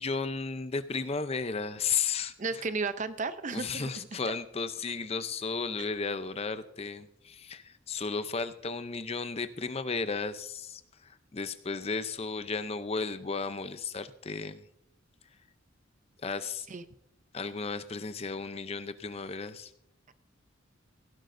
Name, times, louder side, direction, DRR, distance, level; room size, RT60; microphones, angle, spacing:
voice 1, 0.0-2.6 3.5-14.6 16.2-16.7 17.3-19.7, left 4 dB, 30° left, 12 dB, 0.6 m, -34 dB
voice 2, 2.4-4.1 16.7-16.8, right 4 dB, 35° right, 12 dB, 0.6 m, -34 dB
17.0 x 12.0 x 2.6 m, 0.75 s
head